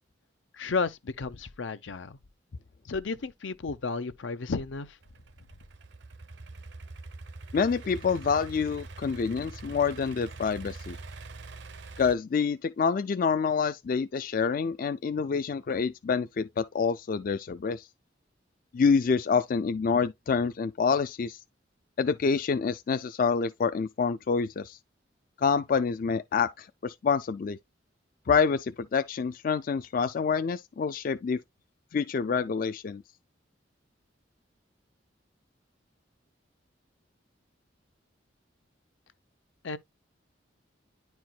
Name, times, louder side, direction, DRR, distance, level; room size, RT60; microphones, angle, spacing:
voice 1, 0.5-2.2 2.9-5.0 39.6-39.8, left 4 dB, 80° left, 0.7 m, -33 dB
Idling / Accelerating revving vroom, 5.0-12.1, right 3 dB, 65° right, 0.7 m, -44 dB
voice 2, 7.5-11.0 12.0-17.9 18.7-21.4 22.0-24.8 25.4-27.6 28.3-31.4 31.9-33.0, left 5 dB, 45° left, 0.4 m, -27 dB
10.0 x 4.5 x 2.2 m
head